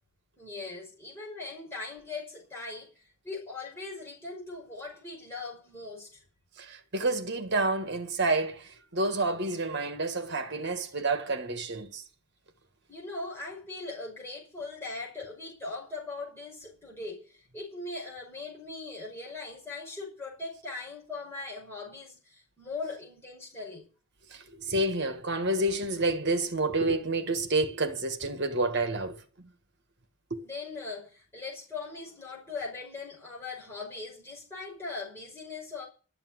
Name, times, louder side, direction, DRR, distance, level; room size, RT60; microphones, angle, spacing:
voice 1, 0.4-6.2 12.9-23.9 30.4-35.8, left 3 dB, 10° left, 5.8 m, -40 dB
voice 2, 6.6-12.0 24.3-29.2, right 2 dB, 50° right, 1.6 m, -29 dB
12.5 x 7.1 x 9.8 m
head